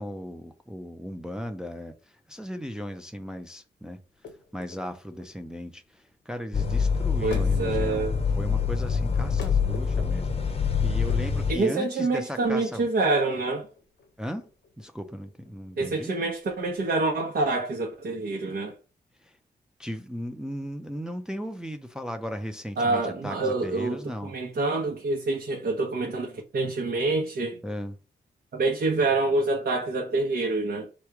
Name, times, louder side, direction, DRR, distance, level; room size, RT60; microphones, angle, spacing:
voice 1, 0.0-4.0 4.5-12.9 14.2-14.5 14.8-16.1 19.2-19.4 19.8-24.3 27.6-28.0, equal, 5° right, 0.5 m, -37 dB
sound 1, 4.1-17.0, left 4 dB, 90° left, 1.0 m, -47 dB
sound 2, 6.5-11.5, left 5 dB, 35° left, 0.7 m, -25 dB
voice 2, 7.2-8.2 11.5-13.7 15.8-18.7 22.8-27.6 28.5-30.9, right 3 dB, 65° right, 1.0 m, -27 dB
3.4 x 3.1 x 4.7 m
wide cardioid pair, 110°, 18 cm